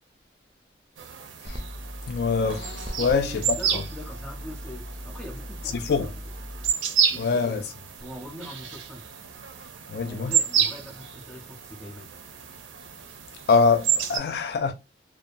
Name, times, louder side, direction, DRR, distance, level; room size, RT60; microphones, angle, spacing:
sound 1, 1.0-14.2, right 8 dB, 85° right, 0.5 m, -30 dB
sound 2, 1.4-6.7, equal, 25° right, 0.4 m, -38 dB
voice 1, 2.1-3.4 3.7-3.8 5.7-6.1 7.2-7.6 9.9-10.3 13.5-14.7, left 5 dB, 55° left, 0.3 m, -24 dB
voice 2, 3.0-6.1 7.1-7.6 8.0-9.0 10.0-12.2, equal, 5° left, 0.7 m, -42 dB
2.7 x 2.1 x 2.5 m
head